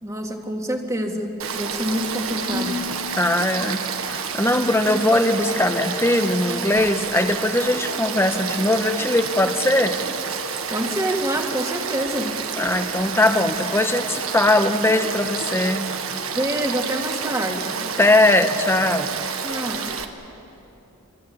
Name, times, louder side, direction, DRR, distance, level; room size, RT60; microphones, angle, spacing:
voice 1, 0.0-2.9 10.7-12.4 16.3-17.9 19.4-20.0, equal, 15° right, 3 dB, 2.3 m, -27 dB
Frog / Stream, 1.4-20.0, right 6 dB, 75° right, 1.6 m, -29 dB
Marimba xylophone / Wood, 2.5-4.7, left 4 dB, 50° right, 4.9 m, -35 dB
voice 2, 3.2-10.0 12.6-15.8 18.0-19.1, left 1 dB, 10° left, 7 dB, 1.3 m, -20 dB
27.0 x 23.5 x 8.8 m, 2.9 s
head